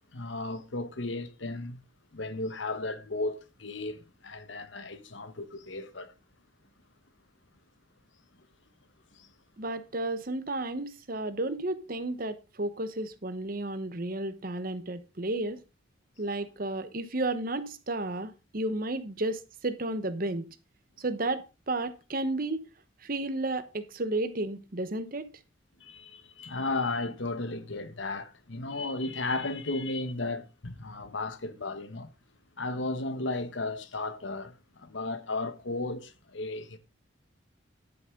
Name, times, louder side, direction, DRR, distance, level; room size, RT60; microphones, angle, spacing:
voice 1, 0.1-1.8 2.1-6.1 9.1-9.3 25.8-32.1 32.6-36.8, left 2 dB, 70° left, 1.2 m, -34 dB
voice 2, 9.6-15.6 16.2-20.4 21.0-22.6 23.0-25.3, right 2 dB, 45° right, 1.0 m, -32 dB
10.5 x 9.0 x 3.7 m
head